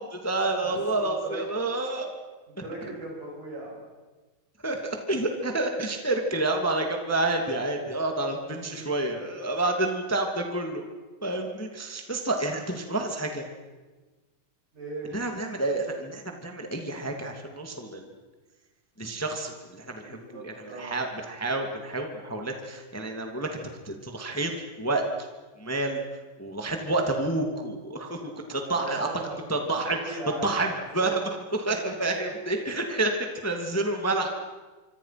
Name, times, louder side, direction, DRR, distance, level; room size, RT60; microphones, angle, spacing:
voice 1, 0.0-2.1 4.6-10.8 11.2-13.4 15.1-18.1 19.0-24.5 24.8-25.3 25.6-26.0 26.4-29.1 29.5-34.3, right 2 dB, 5° left, 3 dB, 1.7 m, -29 dB
voice 2, 0.6-1.4 2.5-3.8 8.7-9.2 14.7-15.1 19.8-21.0 28.6-29.4 29.8-30.7 31.0-31.2 31.7-32.3, right 2 dB, 55° right, -2 dB, 9.0 m, -39 dB
26.0 x 25.5 x 6.0 m, 1.3 s
omnidirectional pair, 4.2 m